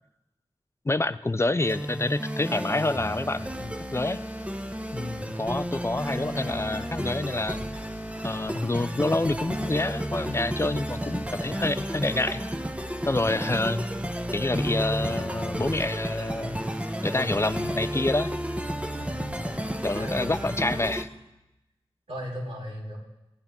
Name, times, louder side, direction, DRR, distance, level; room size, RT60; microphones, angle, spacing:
voice 1, 0.9-4.2 4.9-7.7 8.2-12.4 13.0-13.9 14.3-16.6 17.0-18.3 19.8-21.1, left 2 dB, 25° left, 14 dB, 0.4 m, -27 dB
sound 1, 1.6-21.0, equal, 10° right, 0.9 m, -32 dB
voice 2, 19.0-19.3 19.9-20.5 22.1-23.0, equal, 90° right, -6 dB, 4.2 m, -37 dB
16.5 x 9.6 x 3.6 m, 0.94 s
wide cardioid pair, 70°, 10 cm